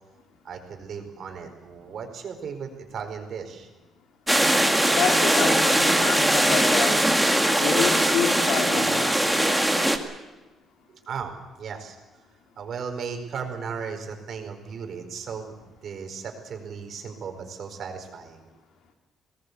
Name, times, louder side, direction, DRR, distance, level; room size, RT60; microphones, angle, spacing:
voice 1, 0.4-3.7 10.9-11.3 11.6-12.0 12.6-15.5 15.8-18.5, right 6 dB, 50° right, 5 dB, 4.6 m, -36 dB
sound 1, 4.3-10.0, right 1 dB, 5° right, 1.9 m, -21 dB
voice 2, 4.9-7.0 7.6-9.1, left 6 dB, 80° left, 1 dB, 3.3 m, -28 dB
22.0 x 19.0 x 8.3 m, 1.1 s
cardioid pair, 145°, 0 cm